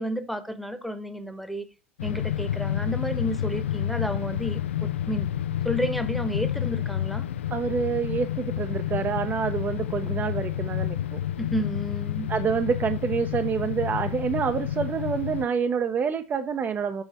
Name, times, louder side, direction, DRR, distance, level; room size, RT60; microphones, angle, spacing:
voice 1, 0.0-1.7 2.0-5.3 5.6-7.3 11.4-12.3, equal, ahead, 1.0 m, -31 dB
sound 1, 2.0-15.5, left 11 dB, 75° left, 0.4 m, -30 dB
voice 2, 7.5-11.2 12.3-17.0, right 6 dB, 30° right, 0.6 m, -27 dB
7.0 x 4.3 x 4.1 m
hypercardioid pair, 80°, 7 cm